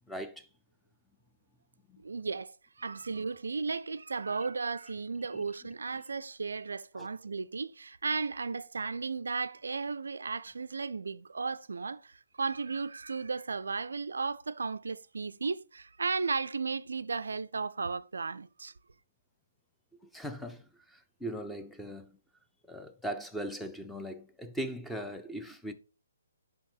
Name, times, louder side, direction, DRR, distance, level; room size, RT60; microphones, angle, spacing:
voice 1, 0.1-0.5 1.9-2.0 7.0-7.1 19.9-22.2 22.7-25.7, right 1 dB, ahead, 0.5 m, -39 dB
voice 2, 2.0-18.7, right 4 dB, 65° right, 0.3 m, -35 dB
7.0 x 5.5 x 3.0 m
figure-of-eight pair, 130°, 0 cm